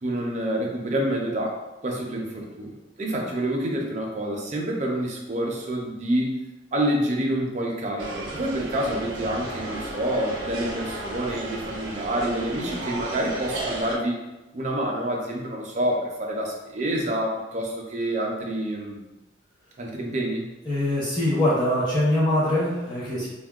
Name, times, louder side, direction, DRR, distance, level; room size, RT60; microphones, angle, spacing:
voice 1, 0.0-6.3 6.7-14.2 14.5-19.0 19.8-20.5, right 1 dB, 40° right, 0 dB, 0.5 m, -27 dB
sound 1, 8.0-14.0, right 2 dB, 85° right, 0.6 m, -34 dB
voice 2, 20.6-23.3, left 1 dB, 25° left, -7 dB, 0.8 m, -23 dB
3.5 x 2.1 x 2.3 m, 1.0 s
head